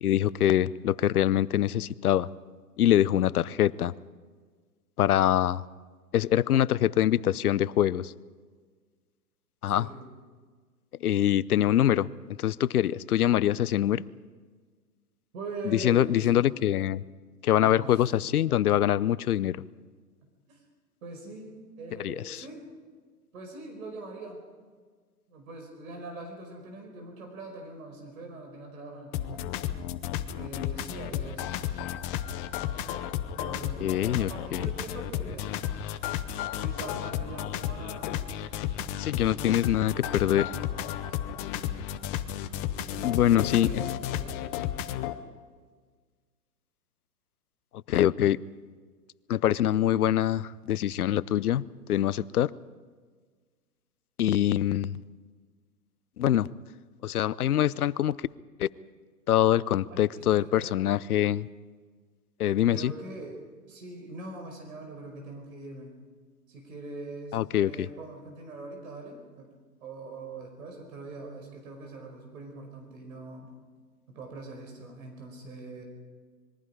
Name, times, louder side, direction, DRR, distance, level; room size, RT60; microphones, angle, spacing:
voice 1, 0.0-2.3 2.8-3.9 5.0-5.6 6.1-8.1 9.6-9.9 11.0-12.1 12.4-14.0 15.6-17.0 17.4-19.6 22.0-22.4 33.8-34.7 39.0-40.5 43.0-43.8 47.9-48.4 49.3-52.5 54.2-55.0 56.2-56.5 57.0-58.1 58.6-58.7 59.3-61.5 62.4-62.9 67.3-67.9, left 11 dB, 60° left, 20 dB, 0.7 m, -24 dB
voice 2, 9.7-10.1 15.3-16.5 17.4-18.2 20.5-20.6 21.0-22.6 23.3-24.4 25.3-29.5 30.4-31.4 33.4-35.6 36.5-38.2 39.3-40.5 42.8-44.4 59.9-60.8 62.7-63.4 63.7-66.0 66.5-67.4 67.6-69.5 69.8-73.5 74.1-75.8, right 2 dB, 55° right, 3 dB, 5.1 m, -42 dB
sound 1, 29.1-45.1, left 11 dB, 20° left, 0.7 m, -33 dB
26.0 x 22.0 x 5.0 m, 1.5 s
figure-of-eight pair, 125°, 49 cm